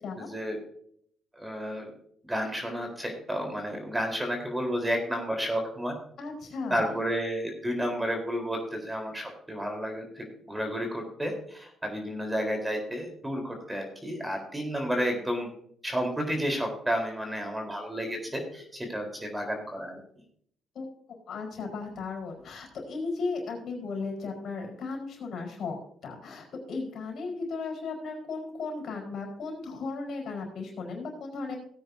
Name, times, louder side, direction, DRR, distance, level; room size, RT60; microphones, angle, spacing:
voice 1, 0.2-0.6 1.4-1.9 2.2-6.0 6.7-15.5 15.8-20.0, equal, 10° right, 3 dB, 3.9 m, -31 dB
voice 2, 6.2-7.1 20.7-25.8 26.0-31.6, left 4 dB, 65° left, 0 dB, 4.6 m, -36 dB
18.0 x 9.1 x 2.7 m, 0.64 s
cardioid pair, 90°, 0 cm